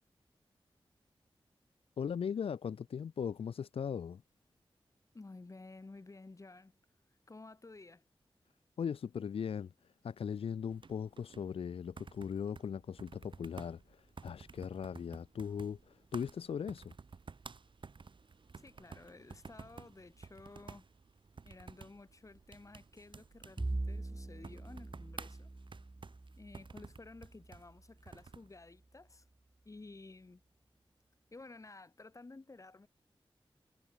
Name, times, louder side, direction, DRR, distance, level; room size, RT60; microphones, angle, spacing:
voice 1, 2.0-4.2 8.8-16.9, left 7 dB, 85° left, 0.4 m, -39 dB
voice 2, 5.1-6.8 7.3-8.0 18.5-20.9 21.4-25.5 26.4-29.2 29.6-30.4 31.3-32.9, left 3 dB, 35° left, 1.5 m, -53 dB
sound 1, 10.7-28.5, right 4 dB, 60° right, 1.7 m, -53 dB
Bowed string instrument, 23.6-28.2, right 2 dB, 25° right, 0.9 m, -43 dB
wide cardioid pair, 85°, 9 cm